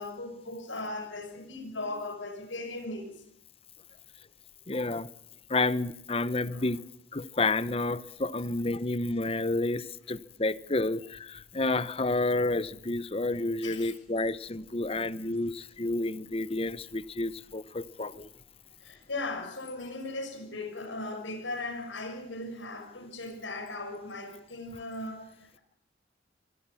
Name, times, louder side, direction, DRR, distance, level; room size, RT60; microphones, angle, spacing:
voice 1, 0.0-3.2 6.5-6.6 13.6-13.9 18.8-25.6, left 2 dB, 80° left, 6.0 m, -38 dB
voice 2, 4.7-5.1 5.5-6.8 7.1-18.3, left 2 dB, 30° left, 0.9 m, -30 dB
25.5 x 22.0 x 7.1 m
head